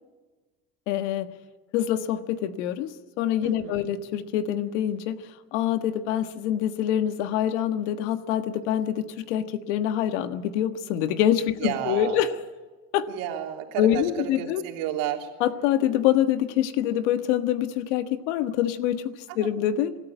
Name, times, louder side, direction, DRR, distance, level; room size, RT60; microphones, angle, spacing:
voice 1, 0.9-1.3 1.7-5.2 5.5-12.3 12.9-13.1 13.8-14.6 15.4-20.0, left 11 dB, 90° left, 10 dB, 1.6 m, -25 dB
voice 2, 3.4-3.9 11.6-12.2 13.1-15.3 19.3-19.5, right 11 dB, 75° right, 3 dB, 3.3 m, -32 dB
25.0 x 13.5 x 9.1 m, 1.3 s
cardioid pair, 130°, 34 cm